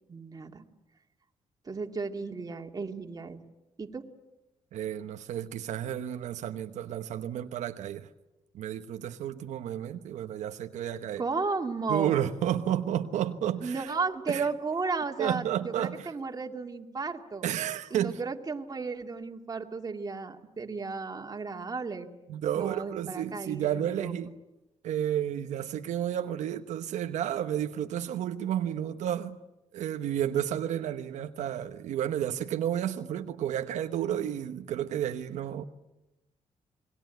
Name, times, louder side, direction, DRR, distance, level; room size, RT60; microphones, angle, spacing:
voice 1, 0.1-0.6 1.7-3.4 3.8-4.0 11.2-12.2 13.6-17.4 17.9-22.1 22.5-24.1, right 4 dB, 30° right, 2.5 m, -34 dB
voice 2, 4.7-8.1 8.5-11.2 11.9-13.9 14.3-14.5 15.2-16.1 17.4-18.2 22.3-24.3 24.8-29.4 29.7-35.6, right 10 dB, 90° right, 1.1 m, -31 dB
28.0 x 21.0 x 9.3 m
cardioid pair, 90°, 12 cm